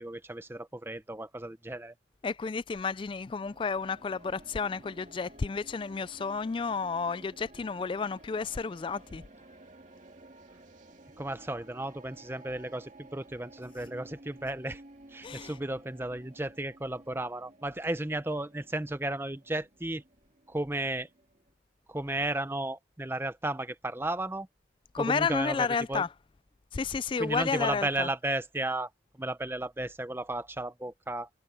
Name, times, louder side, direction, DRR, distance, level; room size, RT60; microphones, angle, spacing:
voice 1, 0.0-1.9 11.2-14.8 15.1-20.0 20.5-21.1 21.9-24.5 25.0-26.0 27.2-31.3, right 1 dB, 10° right, 0.7 m, -34 dB
voice 2, 2.2-9.2 15.2-15.5 24.9-26.1 26.7-28.1, left 5 dB, 25° left, 0.3 m, -31 dB
sound 1, 3.3-21.5, right 1 dB, 40° right, 2.3 m, -54 dB
head